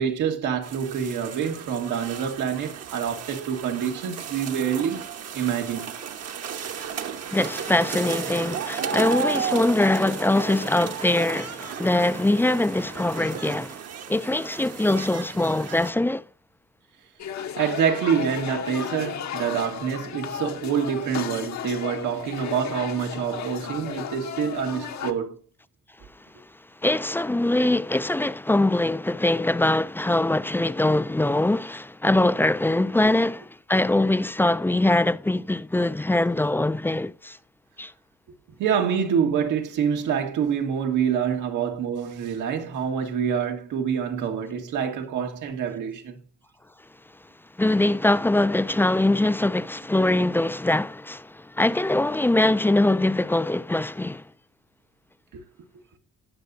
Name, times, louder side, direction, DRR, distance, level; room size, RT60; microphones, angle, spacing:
voice 1, 0.0-5.0 5.3-5.9 17.6-25.4 38.6-46.2 55.3-55.4, right 7 dB, 85° right, 1.7 m, -26 dB
sound 1, 0.6-15.9, right 7 dB, 55° right, 1.1 m, -34 dB
voice 2, 7.3-13.8 14.1-16.2 26.8-37.4 37.8-37.9 47.6-54.2, left 2 dB, 5° left, 0.3 m, -22 dB
sound 2, 17.2-25.1, left 8 dB, 65° left, 1.1 m, -34 dB
17.5 x 6.0 x 2.7 m
cardioid pair, 90°, 30 cm